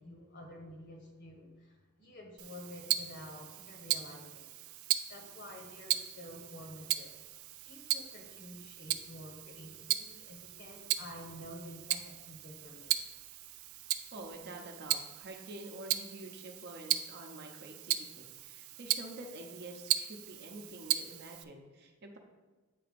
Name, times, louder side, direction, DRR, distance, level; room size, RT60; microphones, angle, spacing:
voice 1, 0.0-4.6 5.1-7.2 7.6-12.9, left 1 dB, 50° left, 2 dB, 1.1 m, -50 dB
Tick-tock, 2.4-21.4, right 13 dB, 70° right, 0.4 m, -37 dB
voice 2, 14.1-22.2, right 1 dB, 50° right, 2 dB, 0.8 m, -48 dB
8.4 x 2.9 x 5.1 m, 1.3 s
head